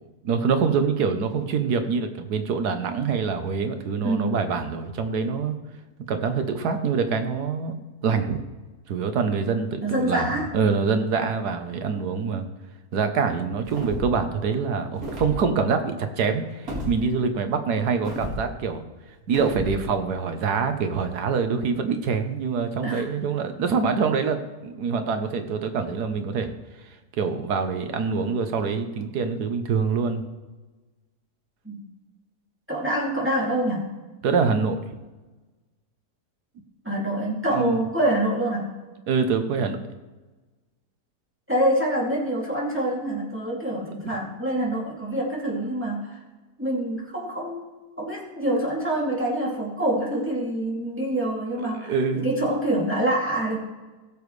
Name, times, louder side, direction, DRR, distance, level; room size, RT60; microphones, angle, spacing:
voice 1, 0.2-5.5 6.1-7.7 8.0-8.4 8.9-12.4 12.9-18.8 19.3-26.5 27.2-30.2 34.2-34.8 37.5-37.8 39.1-39.8 51.8-52.3, right 5 dB, 80° right, 7 dB, 1.5 m, -25 dB
voice 2, 4.0-4.5 8.0-8.2 9.8-10.5 22.8-23.1 31.6-31.8 32.7-33.9 36.8-38.7 41.5-46.2 46.6-47.7 48.0-53.6, right 1 dB, 5° right, -5 dB, 2.5 m, -26 dB
sound 1, 13.7-14.2 15.0-15.4 16.7-16.9 18.1-18.4 19.3-19.8, right 1 dB, 65° right, 2.4 m, -32 dB
16.5 x 7.0 x 3.2 m, 1.2 s
omnidirectional pair, 1.7 m